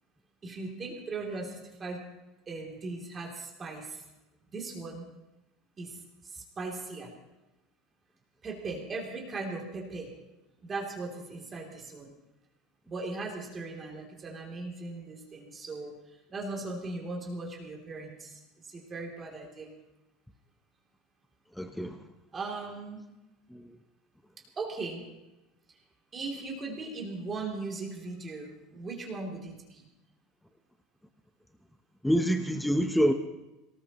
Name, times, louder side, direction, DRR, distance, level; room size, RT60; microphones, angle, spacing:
voice 1, 0.4-2.0 2.5-4.0 4.5-5.0 5.8-6.0 6.2-7.1 8.4-10.1 10.6-12.1 12.9-15.9 16.3-19.7 22.3-23.0 24.6-25.0 26.1-29.8, right 3 dB, 20° right, -1 dB, 3.1 m, -38 dB
voice 2, 21.6-22.0 32.0-33.1, equal, 5° left, 6 dB, 0.8 m, -26 dB
23.0 x 19.0 x 3.1 m, 1.0 s
cardioid pair, 150°, 0 cm